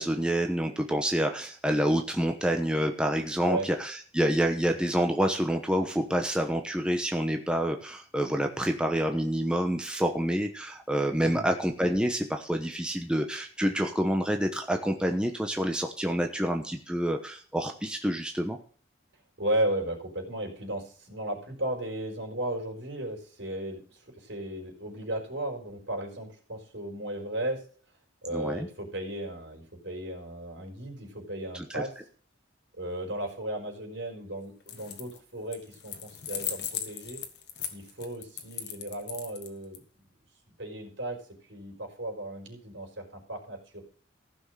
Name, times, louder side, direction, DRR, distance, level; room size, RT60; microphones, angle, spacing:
voice 1, 0.0-18.6 28.3-28.7 31.5-31.8, equal, 5° right, 3 dB, 1.0 m, -28 dB
voice 2, 19.4-27.6 28.2-31.9 32.7-37.2 37.7-39.8 40.6-41.2 41.5-43.8, right 1 dB, 70° right, 2 dB, 4.4 m, -35 dB
sound 1, 34.6-35.2 35.5-39.8, left 9 dB, 60° left, 1.6 m, -37 dB
15.0 x 6.3 x 6.3 m, 0.43 s
head